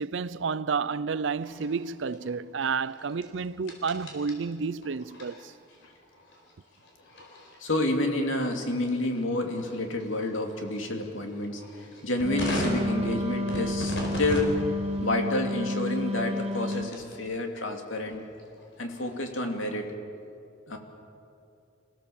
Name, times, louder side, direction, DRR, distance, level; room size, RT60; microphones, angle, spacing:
voice 1, 0.0-5.5, right 5 dB, 75° right, 0.5 m, -30 dB
sound 1, 1.4-17.2 17.6-19.7, left 1 dB, 70° left, 4.9 m, -41 dB
voice 2, 7.6-14.6 15.0-18.2 18.8-19.9 20.7-20.8, left 1 dB, 90° left, 2.7 m, -29 dB
Wind instrument woodwind instrument, 12.2-16.9, left 1 dB, 30° right, 1.3 m, -31 dB
27.5 x 17.0 x 7.3 m
head